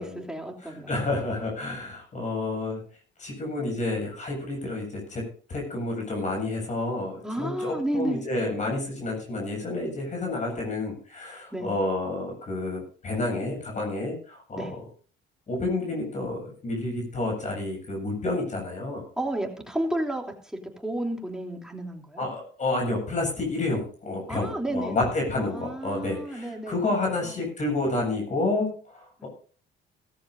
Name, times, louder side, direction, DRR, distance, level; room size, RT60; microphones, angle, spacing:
voice 1, 0.0-1.0 7.2-8.2 11.5-11.7 14.6-14.7 19.2-20.3 20.8-22.2 24.3-27.5 29.2-29.3, right 1 dB, 5° right, 1 dB, 3.1 m, -32 dB
voice 2, 0.9-2.8 3.2-14.6 15.5-19.1 22.2-29.3, left 2 dB, 40° left, 1 dB, 7.9 m, -29 dB
17.5 x 14.5 x 2.7 m, 0.42 s
cardioid pair, 105°, 19 cm